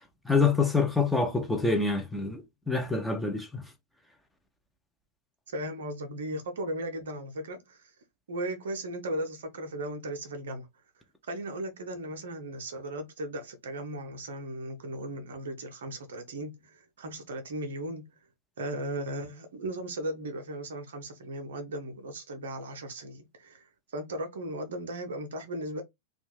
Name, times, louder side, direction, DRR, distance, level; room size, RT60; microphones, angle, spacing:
voice 1, 0.2-3.6, left 4 dB, 5° left, 0.6 m, -26 dB
voice 2, 5.5-7.9 8.3-10.7 11.3-18.0 18.6-25.8, right 1 dB, 65° right, 0.6 m, -37 dB
2.4 x 2.2 x 3.1 m
figure-of-eight pair, 90°, 0 cm